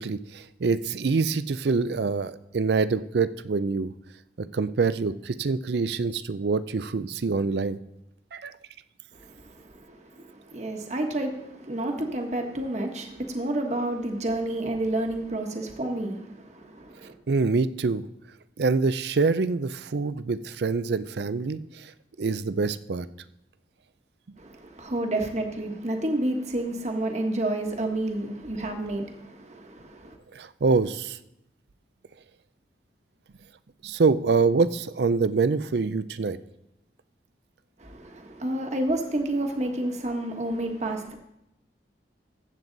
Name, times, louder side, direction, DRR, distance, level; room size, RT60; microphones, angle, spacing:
voice 1, 0.0-3.9 4.5-7.8 8.3-8.5 17.3-18.0 18.6-21.9 22.2-23.1 30.3-31.2 33.8-36.4, right 4 dB, 65° right, 0.5 m, -25 dB
voice 2, 9.1-17.1 24.4-30.1 37.8-41.1, right 1 dB, 40° right, 1.3 m, -30 dB
15.0 x 7.7 x 4.0 m
head